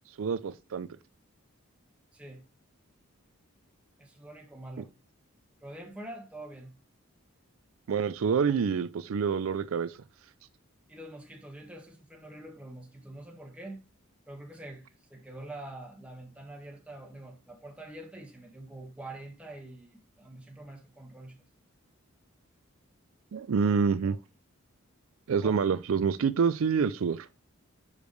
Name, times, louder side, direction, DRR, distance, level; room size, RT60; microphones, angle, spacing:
voice 1, 0.2-0.9 7.9-10.0 23.3-24.2 25.3-27.3, right 6 dB, 70° right, 0.4 m, -27 dB
voice 2, 4.0-4.9 5.6-6.7 10.9-13.8 14.3-21.4 25.4-25.7, right 1 dB, 5° right, 1.5 m, -45 dB
6.6 x 5.1 x 3.2 m
head